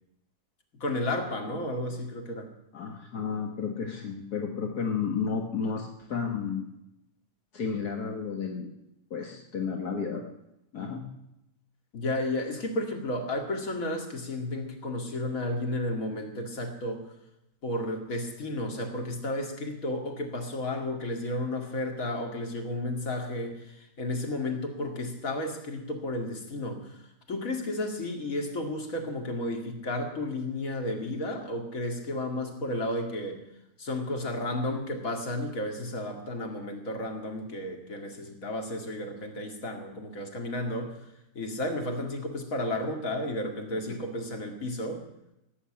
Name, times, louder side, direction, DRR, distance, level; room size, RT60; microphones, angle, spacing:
voice 1, 0.8-2.5 11.9-17.1 17.6-27.0 27.3-33.4 33.8-41.0 41.3-45.0, left 1 dB, 60° left, 3 dB, 2.6 m, -32 dB
voice 2, 2.7-6.7 7.5-8.7 9.1-10.2 10.7-11.1, left 6 dB, 80° left, 2 dB, 2.0 m, -32 dB
17.0 x 8.1 x 8.7 m, 0.86 s
omnidirectional pair, 1.7 m